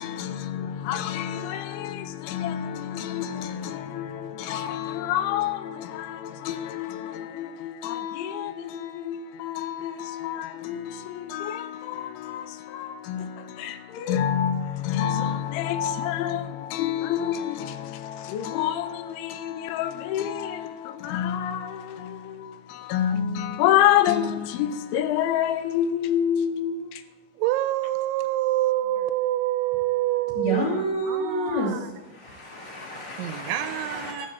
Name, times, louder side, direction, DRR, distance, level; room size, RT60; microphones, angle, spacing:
voice 1, 0.0-27.0, left 10 dB, 80° left, 3.1 m, -28 dB
voice 2, 27.4-31.9 33.2-34.3, right 15 dB, 85° right, 2.8 m, -26 dB
voice 3, 30.3-31.7 32.1-34.3, equal, 30° left, 2.7 m, -29 dB
14.5 x 6.6 x 7.6 m
omnidirectional pair, 5.5 m